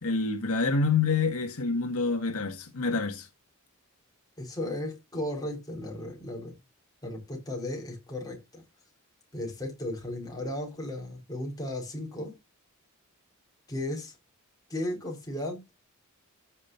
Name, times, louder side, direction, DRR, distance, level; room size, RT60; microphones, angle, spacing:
voice 1, 0.0-3.3, left 4 dB, 75° left, 1.8 m, -27 dB
voice 2, 4.4-6.5 7.0-8.6 9.3-12.3 13.7-14.1 14.7-15.6, left 1 dB, 15° left, 4.4 m, -35 dB
15.0 x 6.5 x 2.5 m
head